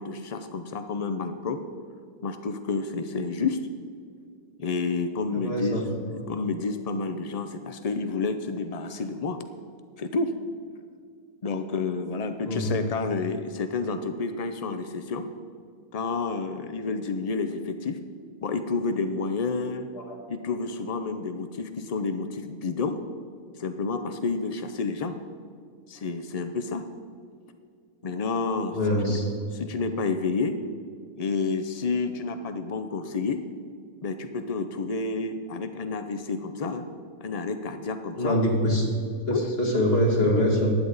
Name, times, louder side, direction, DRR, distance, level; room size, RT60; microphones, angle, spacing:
voice 1, 0.0-1.6 2.2-3.6 4.6-5.8 6.0-9.4 10.0-10.3 11.4-15.3 15.9-18.0 18.4-19.9 20.3-23.0 23.6-25.2 25.9-26.8 28.0-28.8 29.1-29.2 29.5-30.6 31.2-33.4 34.0-36.9 37.2-38.4 39.3-39.5, left 4 dB, 65° left, 8 dB, 0.3 m, -29 dB
voice 2, 5.3-6.2 12.4-12.7 19.9-20.0 28.7-29.3 38.2-38.9 39.3-40.8, equal, 45° left, -2 dB, 2.5 m, -24 dB
16.0 x 11.0 x 4.0 m, 2.3 s
omnidirectional pair, 1.5 m